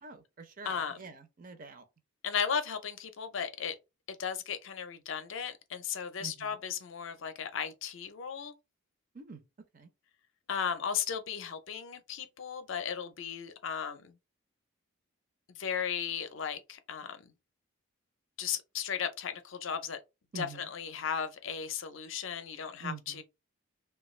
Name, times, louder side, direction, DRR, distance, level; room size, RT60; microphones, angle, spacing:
voice 1, 0.0-1.8 6.2-6.6 9.1-9.4 9.7-9.9 20.3-20.7 22.8-23.2, right 4 dB, 40° right, 0.5 m, -45 dB
voice 2, 0.6-1.0 2.2-3.8 4.2-8.5 10.5-14.1 15.6-17.3 18.4-20.0 20.4-23.2, left 7 dB, 65° left, 0.5 m, -36 dB
3.1 x 2.3 x 3.1 m
head